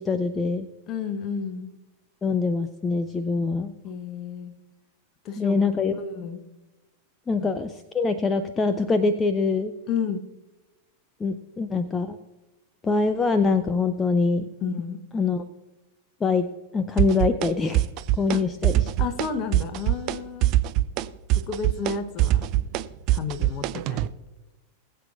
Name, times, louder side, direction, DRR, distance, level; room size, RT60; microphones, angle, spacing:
voice 1, 0.0-0.7 2.2-3.7 5.4-5.9 7.3-9.7 11.2-12.2 12.8-14.5 15.1-15.4 16.2-16.5 16.7-17.8 18.2-18.9, left 4 dB, 15° left, 10 dB, 0.6 m, -24 dB
voice 2, 0.9-1.7 3.8-4.5 5.2-5.7 6.0-6.4 7.4-7.5 9.9-10.2 14.6-15.0 18.3-18.4 19.0-20.5 21.3-22.4 23.1-24.1, left 5 dB, 35° left, 9 dB, 1.2 m, -31 dB
sound 1, 17.0-17.5 17.7-18.4 18.6-19.3 19.5-20.2 20.4-24.1, right 14 dB, 40° right, 0.4 m, -22 dB
20.5 x 7.9 x 2.5 m, 1.1 s
figure-of-eight pair, 90°, 0 cm